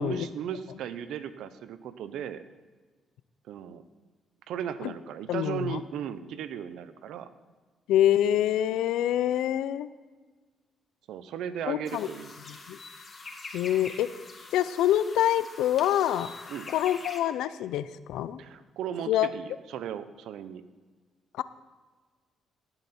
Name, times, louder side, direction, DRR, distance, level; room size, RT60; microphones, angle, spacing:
voice 1, 0.0-2.4 3.5-3.8 4.5-7.3 11.1-12.3 16.5-16.7 18.4-20.6, right 9 dB, 80° right, 13 dB, 0.7 m, -36 dB
voice 2, 5.3-5.8 7.9-9.9 11.7-12.1 12.5-12.8 13.5-14.1 14.5-16.3 16.7-18.4 19.1-19.3 21.4-21.5, left 12 dB, 85° left, 15 dB, 0.5 m, -26 dB
sound 1, 11.8-17.2, left 3 dB, 40° left, 1.9 m, -44 dB
17.0 x 8.0 x 4.3 m, 1.4 s
cardioid pair, 90°, 0 cm